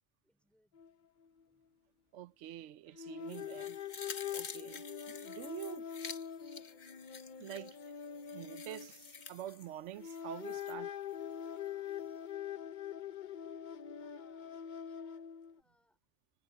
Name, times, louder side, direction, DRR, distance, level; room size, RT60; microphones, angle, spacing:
voice 1, 0.2-1.1 1.5-1.7 13.9-16.0, left 1 dB, ahead, 4.7 m, -72 dB
sound 1, 0.7-0.9 1.2-1.4 2.9-9.6 10.0-15.6, left 9 dB, 45° left, 0.7 m, -44 dB
voice 2, 2.1-3.8 4.3-5.9 7.4-7.8 8.3-11.0, right 12 dB, 80° right, 0.9 m, -47 dB
sound 2, 3.3-10.7 11.1-11.2, left 6 dB, 65° left, 1.5 m, -50 dB
omnidirectional pair, 1.2 m